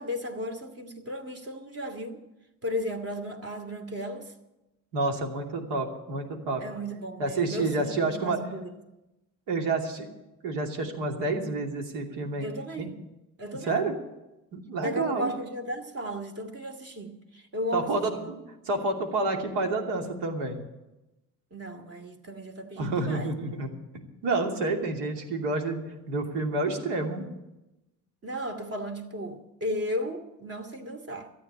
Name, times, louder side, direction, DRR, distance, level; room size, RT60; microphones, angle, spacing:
voice 1, 0.0-2.2 2.6-4.3 6.6-8.7 12.4-13.0 13.4-13.8 14.8-18.3 21.5-23.6 28.2-31.3, equal, 35° right, 4 dB, 2.4 m, -35 dB
voice 2, 4.9-6.6 7.2-8.4 9.5-10.1 10.4-12.5 12.8-12.9 13.6-13.9 14.5-15.3 17.7-18.4 18.6-20.6 22.8-23.7 24.2-25.8 26.1-27.3, right 3 dB, 70° right, 2 dB, 2.8 m, -29 dB
13.5 x 9.0 x 8.6 m, 0.97 s
hypercardioid pair, 65°, 42 cm